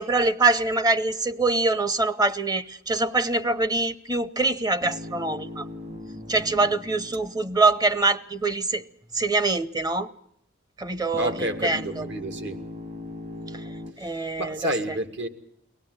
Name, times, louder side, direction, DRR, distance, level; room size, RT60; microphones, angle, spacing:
voice 1, 0.0-5.6 6.3-8.8 9.1-10.1 10.8-11.3 11.6-12.0 13.5-13.6 14.0-15.0, right 3 dB, 20° right, 0.8 m, -24 dB
sound 1, 4.8-8.2 11.1-13.9, left 1 dB, 40° right, 1.8 m, -39 dB
voice 2, 11.2-12.6 14.0-15.3, right 1 dB, 65° right, 2.2 m, -30 dB
23.5 x 18.0 x 8.0 m
head